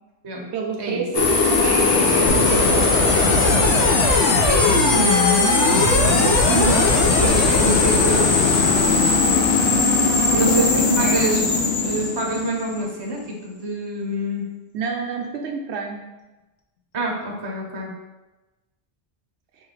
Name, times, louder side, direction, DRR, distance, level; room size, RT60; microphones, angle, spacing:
voice 1, 0.5-3.5 10.3-11.2 14.7-16.1, right 5 dB, 70° right, 1 dB, 0.8 m, -28 dB
sound 1, 1.1-13.1, left 4 dB, 80° left, 1.0 m, -18 dB
sound 2, 2.3-7.3, right 2 dB, 60° left, 0.4 m, -28 dB
voice 2, 4.4-8.6 10.3-10.7 11.0-11.6 11.8-14.5 16.9-17.9, right 2 dB, 30° right, -1 dB, 0.5 m, -26 dB
5.2 x 2.3 x 3.2 m, 1.1 s
omnidirectional pair, 1.2 m